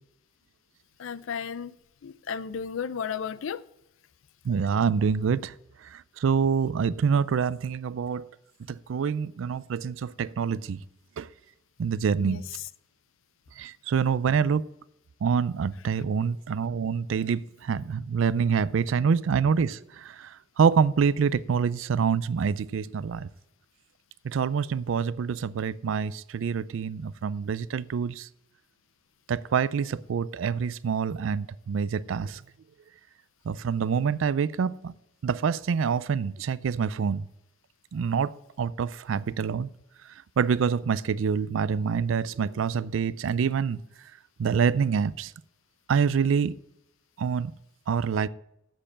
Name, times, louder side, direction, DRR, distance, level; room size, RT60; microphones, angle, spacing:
voice 1, 1.0-1.8 2.0-3.6 12.2-12.4, left 6 dB, 90° left, 0.4 m, -34 dB
voice 2, 4.4-5.5 5.8-8.3 8.7-10.8 11.2-11.3 11.8-12.4 13.6-14.6 15.2-23.3 24.2-28.3 29.3-32.4 33.5-34.9 35.2-37.3 37.9-39.7 40.4-43.8 44.4-45.3 45.9-46.5 47.2-47.5 47.9-48.3, right 6 dB, 85° right, 0.4 m, -26 dB
7.7 x 6.7 x 7.2 m
head